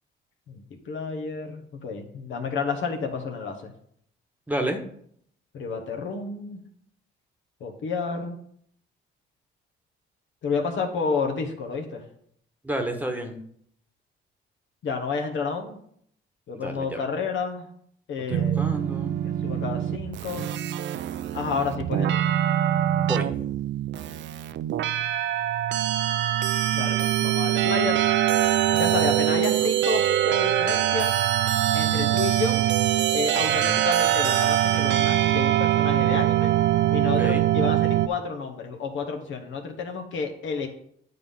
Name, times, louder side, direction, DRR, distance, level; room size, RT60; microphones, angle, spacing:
voice 1, 0.5-3.7 5.5-6.6 7.6-8.4 10.4-12.0 14.8-15.8 16.5-17.7 18.1-18.6 19.2-20.5 21.3-22.2 26.7-28.0 28.7-31.1 31.7-32.6 33.1-36.5 36.9-40.7, left 5 dB, 75° left, 3 dB, 1.3 m, -30 dB
voice 2, 4.5-4.8 12.6-13.4 16.5-17.0 18.3-19.1 23.0-23.3 29.3-29.7 31.8-32.1 33.5-33.8 37.2-37.5, right 1 dB, 10° right, 5 dB, 1.2 m, -31 dB
sound 1, 18.3-38.1, right 12 dB, 65° right, 0.4 m, -23 dB
9.4 x 4.0 x 5.4 m, 0.66 s
cardioid pair, 90°, 20 cm